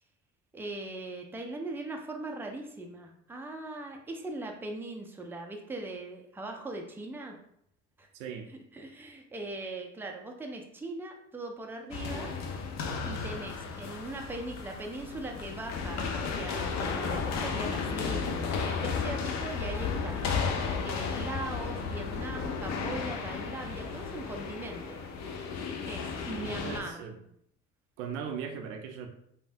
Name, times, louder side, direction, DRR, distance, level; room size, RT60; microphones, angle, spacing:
voice 1, 0.5-7.4 8.0-8.1 8.7-12.3 13.0-20.2 20.8-25.0 25.9-27.0, right 2 dB, 5° right, 2 dB, 0.4 m, -40 dB
voice 2, 8.1-8.5 26.4-27.2 28.0-29.1, right 7 dB, 85° right, 5 dB, 0.5 m, -39 dB
sound 1, 11.9-26.8, left 5 dB, 50° left, 0.6 m, -34 dB
3.3 x 2.2 x 2.6 m, 0.71 s
hypercardioid pair, 65°, 35 cm